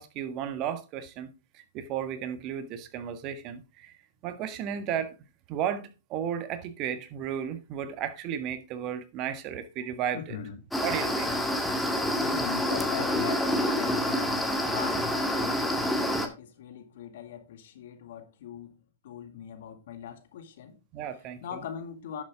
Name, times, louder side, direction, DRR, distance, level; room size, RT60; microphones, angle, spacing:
voice 1, 0.0-4.0 4.2-5.2 5.5-10.4 10.8-11.3 20.9-21.6, right 9 dB, 40° right, 1.5 m, -34 dB
voice 2, 10.1-10.6 12.2-18.8 19.0-20.8 21.4-22.2, left 8 dB, 65° left, 2.0 m, -40 dB
sound 1, 10.7-16.3, left 1 dB, 5° left, 1.8 m, -27 dB
11.0 x 7.3 x 3.6 m
hypercardioid pair, 120°, 0 cm